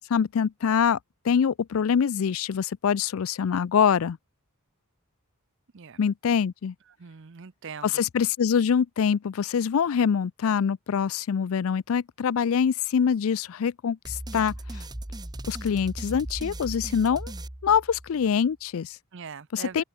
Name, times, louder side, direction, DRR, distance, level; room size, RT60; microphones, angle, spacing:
voice 1, 0.1-1.0 1.2-4.2 6.0-6.7 7.8-14.8 15.5-17.3 17.6-19.0 19.5-19.8, left 7 dB, 70° left, 0.4 m, -24 dB
voice 2, 7.0-8.0 19.1-19.8, right 6 dB, 55° right, 0.6 m, -41 dB
sound 1, 14.0-18.3, right 1 dB, 20° right, 1.2 m, -38 dB
open air
head